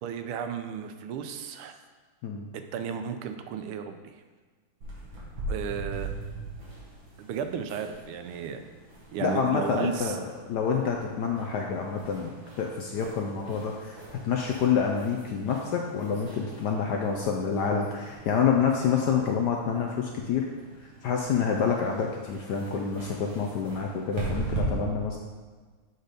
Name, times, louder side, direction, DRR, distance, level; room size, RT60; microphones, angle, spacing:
voice 1, 0.0-1.7 2.7-4.2 5.5-6.1 7.2-8.6 9.1-10.2, right 7 dB, 90° right, 7 dB, 1.5 m, -34 dB
sound 1, 4.8-24.6, right 3 dB, 60° right, 2.4 m, -42 dB
voice 2, 9.2-14.0 14.2-20.5 21.0-25.2, left 6 dB, 70° left, 1 dB, 1.0 m, -27 dB
7.9 x 4.1 x 5.0 m, 1.4 s
omnidirectional pair, 2.4 m